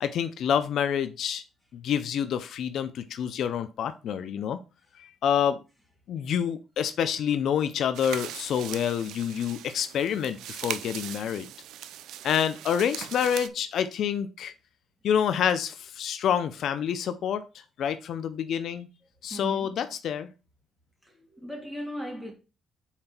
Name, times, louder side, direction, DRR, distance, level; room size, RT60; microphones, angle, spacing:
voice 1, 0.0-1.4 1.8-4.6 5.0-5.6 6.1-11.5 12.2-14.5 15.0-17.4 17.8-18.9 19.2-20.3, left 8 dB, 65° left, 0.6 m, -27 dB
sound 1, 7.9-13.5, right 11 dB, 85° right, 0.5 m, -39 dB
voice 2, 19.3-19.8 21.0-22.3, equal, 10° right, 2.8 m, -38 dB
5.8 x 4.4 x 4.3 m
cardioid pair, 100°, 0 cm